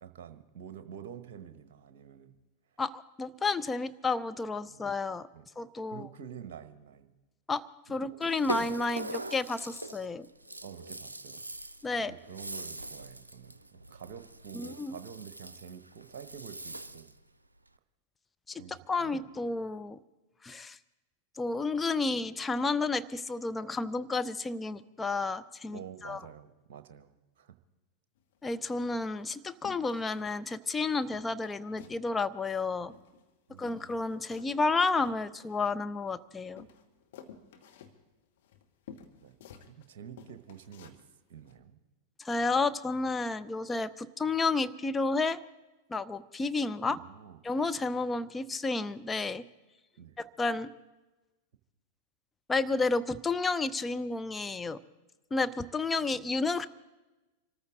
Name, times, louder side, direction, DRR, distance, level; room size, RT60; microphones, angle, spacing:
voice 1, 0.0-2.4 4.6-4.8 5.3-5.5 5.9-7.1 7.9-8.7 10.6-11.4 12.1-17.1 18.5-19.3 25.7-27.6 33.5-33.9 39.1-39.4 39.7-41.0 41.3-41.8 46.8-47.4 50.0-50.2 56.1-56.2, right 8 dB, 50° right, 10 dB, 1.2 m, -48 dB
voice 2, 2.8-5.3 5.6-6.1 7.5-7.6 7.9-10.3 11.8-12.1 14.5-15.0 18.5-20.0 20.4-20.8 21.4-26.2 28.4-32.9 33.6-36.7 42.2-45.4 45.9-47.0 47.4-49.4 50.2-50.7 52.5-54.8 55.3-56.7, left 3 dB, 15° left, 11 dB, 0.6 m, -31 dB
Rattle (instrument), 8.2-17.2, right 2 dB, 80° right, 0.6 m, -42 dB
sound 1, 28.2-28.4 28.8-29.3 29.6-30.4 30.7-30.8 31.1-32.1 32.3-33.3 33.6-36.1 36.6-39.9 40.2-41.0 41.4-41.6, left 7 dB, 55° left, 1.4 m, -53 dB
25.0 x 14.0 x 3.8 m, 1.1 s
figure-of-eight pair, 90°, 0 cm